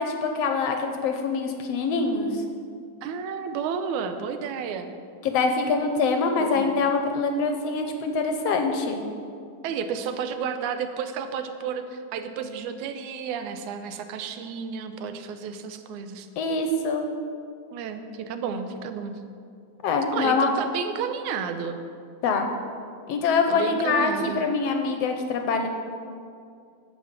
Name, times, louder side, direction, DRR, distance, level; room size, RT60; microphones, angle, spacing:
voice 1, 0.0-2.4 5.2-9.0 16.4-17.1 19.8-20.5 22.2-22.5 23.1-25.7, left 4 dB, 70° left, 5 dB, 1.7 m, -24 dB
voice 2, 3.0-4.9 6.4-6.7 9.6-16.3 17.7-19.2 20.1-21.8 23.5-24.4, right 6 dB, 90° right, 8 dB, 2.2 m, -32 dB
10.5 x 7.6 x 6.7 m, 2.4 s
omnidirectional pair, 3.3 m